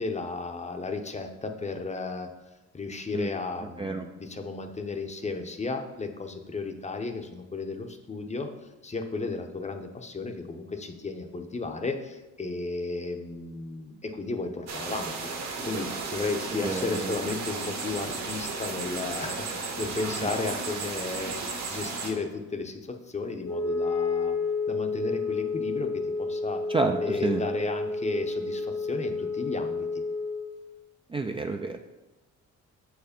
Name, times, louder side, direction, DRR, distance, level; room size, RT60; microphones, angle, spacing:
voice 1, 0.0-2.3 2.7-8.5 8.8-21.4 21.7-24.4 24.7-26.6 27.0-29.9, left 3 dB, 25° left, 6 dB, 0.7 m, -34 dB
sound 1, 14.7-22.1, right 4 dB, 60° right, 1.4 m, -34 dB
voice 2, 16.5-17.1 20.2-20.3 26.7-27.4 31.1-31.8, right 3 dB, 20° right, 4 dB, 0.4 m, -29 dB
Wind instrument woodwind instrument, 23.4-30.5, left 3 dB, 50° left, 1.1 m, -30 dB
6.3 x 4.8 x 5.1 m, 1.1 s
cardioid pair, 90°, 30 cm